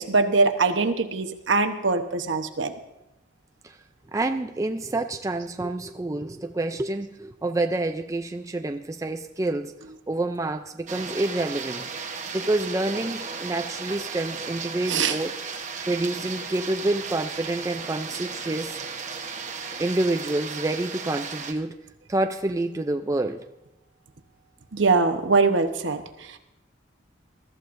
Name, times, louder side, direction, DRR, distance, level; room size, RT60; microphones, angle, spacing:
voice 1, 0.0-2.7 14.9-15.2 24.7-26.4, right 4 dB, 70° right, 6 dB, 1.0 m, -23 dB
voice 2, 4.1-9.7 10.1-11.9 12.3-15.3 15.9-18.8 19.8-21.8 22.1-23.4, right 2 dB, 15° right, 6 dB, 0.4 m, -28 dB
sound 1, 10.9-21.5, right 5 dB, 40° right, 1.1 m, -35 dB
21.5 x 13.5 x 2.6 m, 0.91 s
head